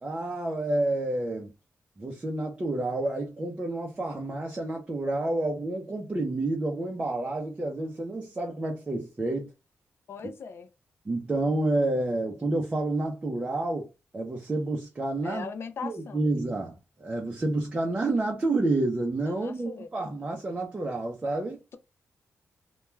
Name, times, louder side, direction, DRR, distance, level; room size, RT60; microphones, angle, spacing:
voice 1, 0.0-1.5 2.0-9.5 11.1-13.9 14.1-15.5 15.8-21.6, right 2 dB, 20° right, 0.5 m, -29 dB
voice 2, 10.1-10.7 15.2-16.2 19.3-20.1, left 5 dB, 50° left, 0.4 m, -39 dB
2.2 x 2.2 x 3.0 m
wide cardioid pair, 175°, 5 cm